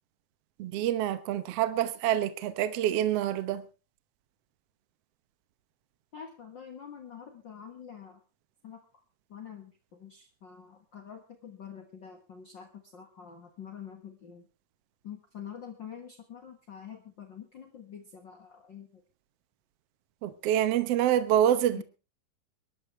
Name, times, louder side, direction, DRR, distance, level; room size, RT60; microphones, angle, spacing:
voice 1, 0.6-3.6 20.2-21.8, right 11 dB, 65° right, 1.6 m, -26 dB
voice 2, 6.1-8.2 8.6-8.8 9.3-14.4 15.0-19.0 21.7-21.8, left 8 dB, 45° left, 1.7 m, -46 dB
23.5 x 11.5 x 3.2 m
omnidirectional pair, 3.9 m